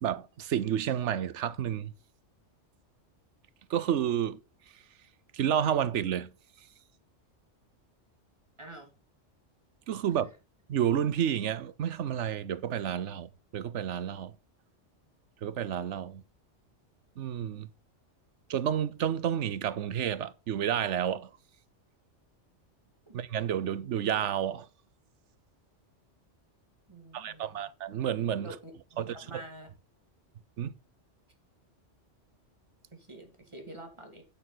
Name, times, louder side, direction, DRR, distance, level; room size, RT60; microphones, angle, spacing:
voice 1, 0.0-1.9 3.7-4.4 5.3-6.3 9.9-10.3 10.7-14.3 15.4-16.2 17.2-17.7 18.5-21.3 23.1-24.7 27.1-28.6 29.0-29.4 30.6-30.7, right 9 dB, 75° right, 1.1 m, -30 dB
voice 2, 8.6-8.9 23.1-23.2 26.9-27.7 28.4-29.7 32.9-34.2, right 1 dB, 25° right, 2.8 m, -47 dB
9.1 x 8.4 x 4.0 m
omnidirectional pair, 1.2 m